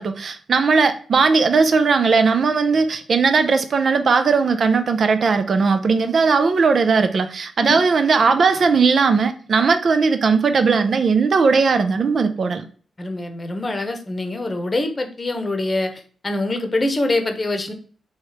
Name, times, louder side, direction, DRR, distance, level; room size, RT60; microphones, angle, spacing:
voice 1, 0.0-12.6, right 4 dB, 60° right, 0.5 m, -18 dB
voice 2, 13.0-17.7, left 2 dB, 30° left, 0.9 m, -24 dB
3.2 x 3.1 x 4.7 m
cardioid pair, 65°, 0 cm